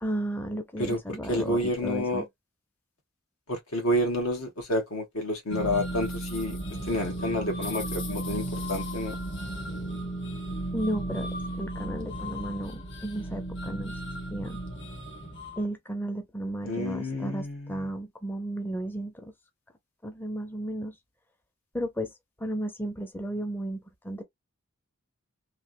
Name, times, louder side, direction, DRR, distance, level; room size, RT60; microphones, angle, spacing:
voice 1, 0.0-2.3 10.7-11.3 11.6-13.9 14.3-14.6 15.6-19.3 20.0-21.0 21.7-24.2, right 1 dB, 10° left, 0.5 m, -34 dB
voice 2, 1.3-2.2 3.5-6.6 6.9-9.2 16.6-17.9, left 1 dB, 85° left, 1.4 m, -29 dB
sound 1, 5.5-15.6, right 1 dB, 55° left, 1.2 m, -35 dB
3.3 x 2.4 x 2.6 m
head